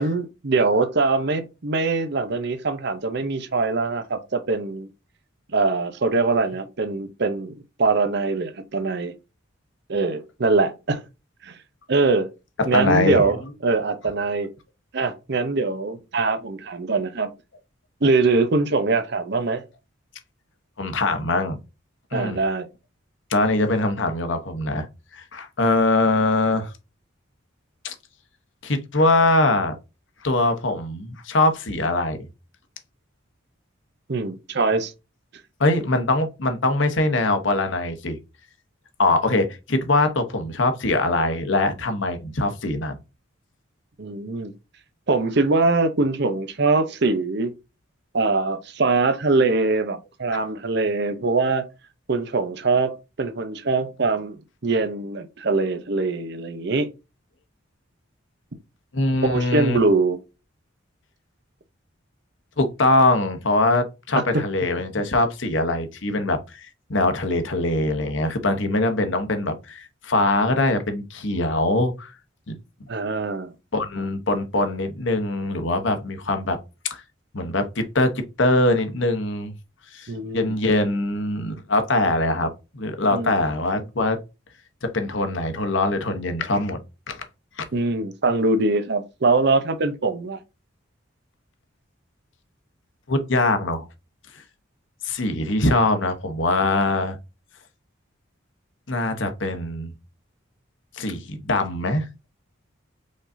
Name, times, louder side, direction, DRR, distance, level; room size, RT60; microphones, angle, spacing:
voice 1, 0.0-4.9 5.5-9.1 9.9-11.0 11.4-11.6 11.9-12.3 12.7-14.5 14.9-17.3 18.0-19.6 22.1-22.7 34.1-34.9 44.0-44.5 45.1-47.5 48.1-51.6 52.1-52.9 53.2-56.9 59.2-60.2 64.1-64.4 72.9-73.5 80.1-80.5 83.1-83.3 87.7-90.4, right 3 dB, 55° right, 0.7 m, -23 dB
voice 2, 12.6-13.4 20.8-21.6 22.1-22.4 23.3-24.9 25.1-26.7 27.8-27.9 28.6-29.7 30.2-32.2 35.6-38.2 39.0-43.0 58.9-59.8 62.6-72.1 72.5-72.6 73.7-76.6 76.8-77.0 77.3-79.5 79.9-84.2 84.8-87.2 87.6-87.7 93.1-93.9 95.0-97.2 98.9-99.9 100.9-102.1, left 2 dB, 65° left, 1.0 m, -22 dB
5.1 x 3.9 x 2.6 m
head